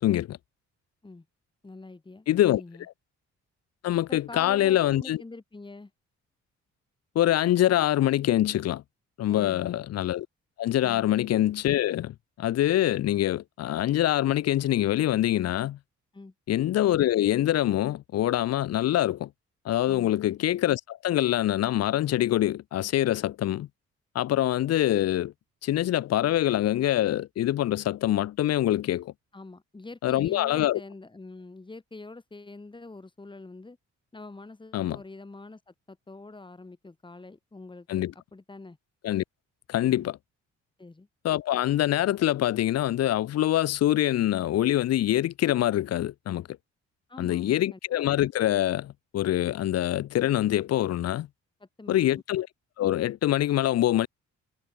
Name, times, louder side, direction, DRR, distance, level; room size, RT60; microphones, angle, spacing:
voice 1, 0.0-0.4 2.3-2.6 3.8-5.2 7.1-8.8 9.2-10.3 10.6-15.8 16.5-19.3 19.6-23.7 24.1-25.3 25.6-29.1 30.0-30.8 34.7-35.0 37.9-38.1 39.0-39.2 39.7-40.2 41.2-46.5 47.2-51.3 51.9-52.5 52.8-54.1, left 13 dB, 55° left, 0.6 m, -25 dB
voice 2, 1.6-2.9 4.1-5.9 9.3-9.7 16.1-16.3 19.9-20.2 29.3-33.8 34.1-38.0 38.3-38.8 39.8-40.1 40.8-41.1 47.1-47.8 51.6-52.2, left 3 dB, 15° left, 2.0 m, -45 dB
cardioid pair, 90°, 30 cm